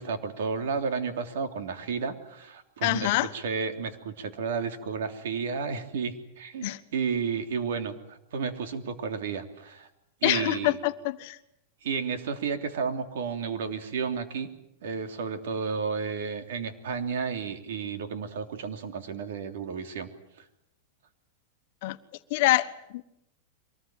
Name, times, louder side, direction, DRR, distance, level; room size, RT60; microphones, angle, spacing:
voice 1, 0.0-9.9 10.2-10.8 11.8-14.5 14.8-20.1, right 5 dB, 75° right, 7 dB, 3.2 m, -32 dB
voice 2, 2.8-3.3 6.6-6.8 10.2-11.4 21.8-22.0 22.3-23.0, left 18 dB, 50° left, 11 dB, 1.2 m, -26 dB
24.0 x 19.5 x 9.1 m, 0.81 s
supercardioid pair, 160°, 0 cm